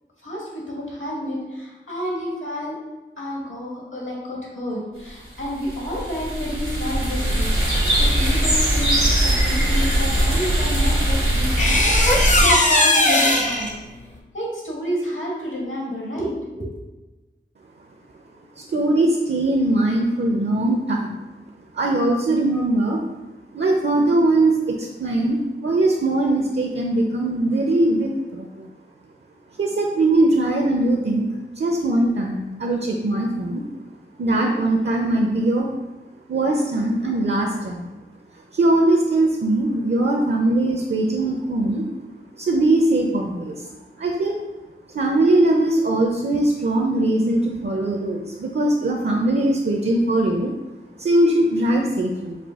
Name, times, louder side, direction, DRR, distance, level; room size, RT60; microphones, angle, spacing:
voice 1, 0.2-2.8 3.2-9.0 9.2-13.7 14.3-16.7, equal, 70° left, -4 dB, 1.4 m, -30 dB
sound 1, 5.3-12.4, right 1 dB, 90° right, 1.1 m, -20 dB
sound 2, 10.3-10.4 11.6-13.7, left 1 dB, 35° left, 0.6 m, -18 dB
voice 2, 18.6-21.2 21.7-23.0 23.5-28.7 29.6-31.3 31.6-33.6 34.2-35.7 36.3-37.9 38.5-41.9 42.4-43.7 44.0-44.3 44.9-50.5 51.0-52.4, right 2 dB, 60° right, 1 dB, 0.5 m, -21 dB
4.9 x 2.2 x 3.5 m, 1.1 s
wide cardioid pair, 40°, 21 cm